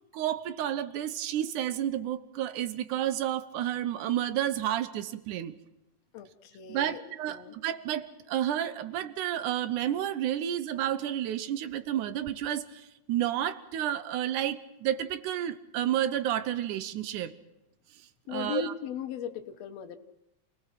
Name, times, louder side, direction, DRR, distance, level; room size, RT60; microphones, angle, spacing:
voice 1, 0.1-5.5 6.7-17.4 18.3-18.7, right 11 dB, 85° right, 13 dB, 2.4 m, -31 dB
voice 2, 6.1-7.0 7.3-7.6 18.3-20.0, left 8 dB, 65° left, 6 dB, 2.2 m, -37 dB
28.5 x 18.5 x 5.9 m, 0.91 s
omnidirectional pair, 3.4 m